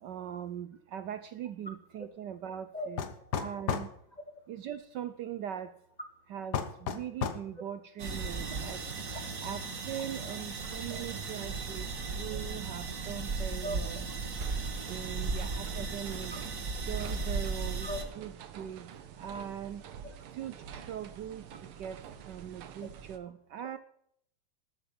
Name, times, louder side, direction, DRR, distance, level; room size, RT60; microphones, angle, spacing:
voice 1, 0.0-3.0 3.4-3.9 4.5-5.7 6.3-8.8 9.4-9.6 9.9-14.0 14.9-16.3 16.9-17.9 18.2-18.9 19.2-19.8 20.4-21.4 21.8-22.0 22.3-23.8, right 9 dB, 70° right, 12 dB, 1.1 m, -40 dB
voice 2, 2.7-3.4 4.1-4.4 7.6-7.7 10.0-10.1 10.6-11.0 12.3-12.4 13.6-13.8 16.3-16.4 17.8-18.1 19.2-19.3 20.0-20.2, equal, 25° left, 5 dB, 1.1 m, -41 dB
sound 1, 3.0-3.9 6.5-7.5, left 7 dB, 55° left, 1.6 m, -32 dB
sound 2, 8.0-18.0, right 4 dB, 45° right, 1.8 m, -36 dB
sound 3, 14.4-23.2, right 8 dB, 85° right, 2.0 m, -48 dB
13.0 x 8.9 x 5.9 m, 0.68 s
omnidirectional pair, 2.3 m